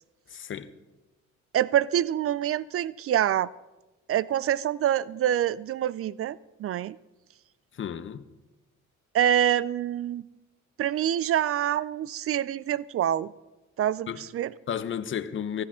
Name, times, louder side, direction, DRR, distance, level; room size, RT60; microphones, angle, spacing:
voice 1, 0.3-0.7 7.7-8.3 14.1-14.2 14.7-15.6, left 8 dB, 40° left, 0.7 m, -33 dB
voice 2, 1.5-3.5 4.1-7.0 9.1-10.2 10.8-13.3 13.8-14.5, right 11 dB, 50° right, 0.4 m, -26 dB
16.0 x 12.5 x 3.7 m
cardioid pair, 90°, 30 cm